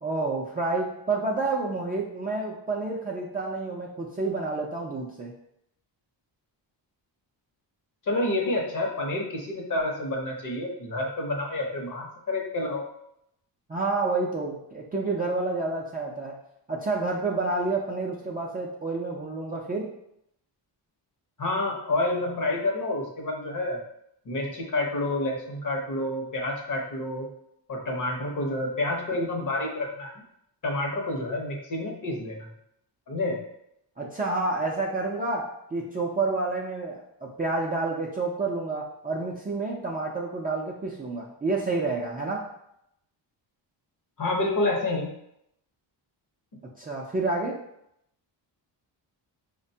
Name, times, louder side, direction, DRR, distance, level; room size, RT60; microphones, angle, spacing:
voice 1, 0.0-5.3 13.7-16.4 16.7-19.9 34.0-42.5 46.8-47.6, right 3 dB, 20° right, -4 dB, 0.3 m, -29 dB
voice 2, 8.0-12.8 21.4-23.8 24.3-27.3 27.7-30.1 30.6-32.5 33.1-33.4 44.2-45.1, left 2 dB, 45° left, 0 dB, 0.8 m, -29 dB
4.8 x 2.2 x 2.7 m, 0.77 s
wide cardioid pair, 135°, 45 cm